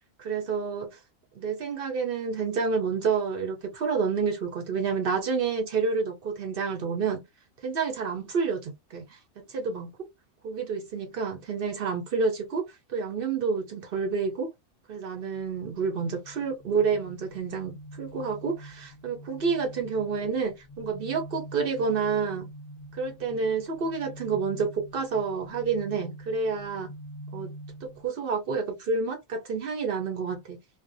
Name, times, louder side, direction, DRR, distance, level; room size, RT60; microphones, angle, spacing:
voice 1, 0.2-1.0 1.4-7.2 7.6-9.2 9.5-9.9 10.4-14.5 14.9-22.5 22.9-26.9 27.3-27.5 27.8-30.6, right 5 dB, 60° right, 0.6 m, -29 dB
sound 1, 15.3-28.1, right 1 dB, 45° left, 0.5 m, -45 dB
2.4 x 2.1 x 2.5 m
omnidirectional pair, 1.4 m